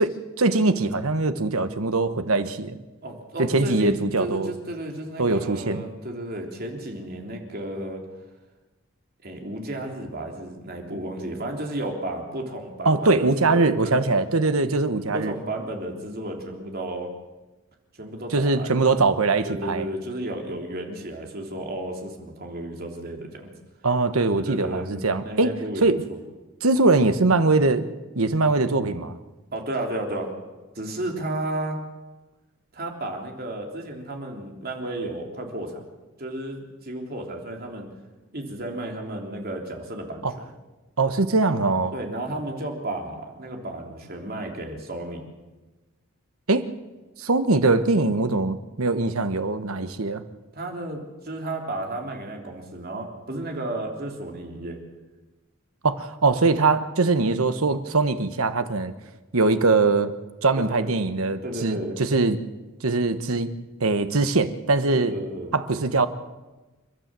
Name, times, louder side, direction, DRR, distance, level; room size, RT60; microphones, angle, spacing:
voice 1, 0.0-2.8 3.4-4.5 5.2-5.8 12.8-15.3 18.3-19.8 23.8-25.5 25.8-26.0 26.6-27.9 28.1-29.2 40.2-40.3 41.0-41.9 46.5-46.7 47.2-50.2 55.8-58.9 59.3-60.1 60.4-62.4 62.8-63.5 63.8-65.1 65.5-66.1, right 3 dB, 80° right, 10 dB, 1.2 m, -22 dB
voice 2, 3.0-8.0 9.2-14.0 15.1-17.1 18.0-18.7 19.4-23.5 24.4-25.9 29.5-30.3 30.8-31.8 32.7-35.9 36.2-37.9 38.3-40.5 41.9-45.2 50.5-54.8 60.5-60.9 61.4-62.0 64.9-65.5, right 1 dB, 45° right, 2 dB, 3.5 m, -33 dB
29.5 x 12.5 x 7.6 m, 1.1 s
head